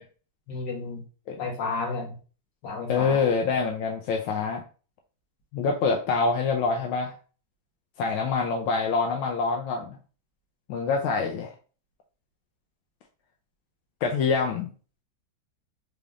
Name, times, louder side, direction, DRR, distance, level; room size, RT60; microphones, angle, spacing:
voice 1, 0.5-1.0 1.4-2.2 2.6-3.3, left 3 dB, 65° left, -1 dB, 1.8 m, -32 dB
voice 2, 2.9-4.6 5.5-7.2 8.0-10.0 10.7-11.5 14.0-14.7, left 4 dB, 85° left, 2 dB, 1.4 m, -25 dB
3.9 x 3.4 x 2.4 m, 0.38 s
omnidirectional pair, 2.2 m